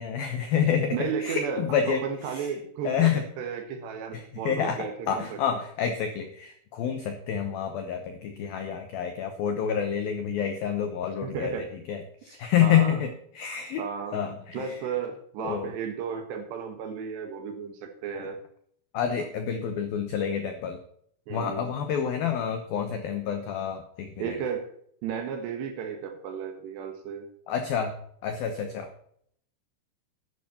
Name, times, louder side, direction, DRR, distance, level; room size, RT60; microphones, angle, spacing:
voice 1, 0.0-2.0 2.3-2.5 2.8-3.2 4.1-11.5 11.9-13.8 14.1-14.8 15.4-15.7 18.2-18.3 18.9-20.8 21.3-24.4 27.5-27.9 28.2-28.9, left 8 dB, 85° left, 6 dB, 2.0 m, -28 dB
voice 2, 0.9-3.1 3.4-5.5 11.2-11.7 12.3-13.0 13.8-18.4 21.3-21.7 24.2-24.7 25.0-27.3, right 7 dB, 65° right, 5 dB, 3.3 m, -34 dB
11.5 x 11.0 x 4.3 m, 0.65 s
omnidirectional pair, 5.9 m